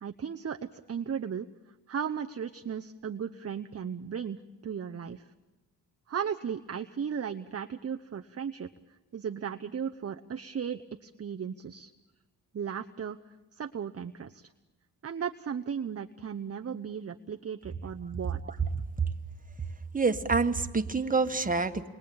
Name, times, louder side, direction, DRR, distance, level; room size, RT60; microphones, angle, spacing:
voice 1, 0.0-1.5 1.9-4.4 4.6-5.3 6.1-8.7 9.1-11.9 12.5-13.2 13.5-14.5 15.0-18.6, right 7 dB, 40° right, 7 dB, 0.9 m, -36 dB
voice 2, 19.9-21.9, right 4 dB, 20° right, 7 dB, 1.7 m, -27 dB
29.5 x 22.5 x 8.8 m, 1.2 s
cardioid pair, 80°, 38 cm